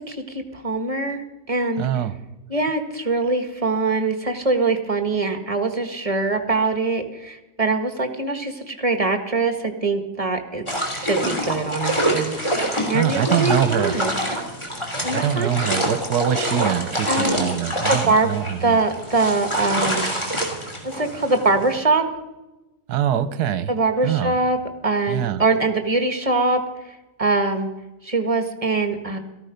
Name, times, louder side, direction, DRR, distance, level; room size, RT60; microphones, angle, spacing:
voice 1, 0.0-1.9 2.5-14.1 15.0-15.5 17.1-17.5 17.9-18.3 18.6-20.1 20.8-22.0 23.7-24.6 24.8-26.6 26.8-27.7 28.0-29.2, right 3 dB, 20° right, 7 dB, 1.4 m, -23 dB
voice 2, 1.8-2.1 12.9-13.9 15.1-18.8 22.9-23.7 24.0-24.3 25.1-25.4, right 10 dB, 65° right, 13 dB, 1.3 m, -23 dB
sound 1, 10.7-21.8, right 1 dB, 15° left, 3.0 m, -26 dB
17.5 x 14.0 x 5.2 m, 1.0 s
omnidirectional pair, 1.9 m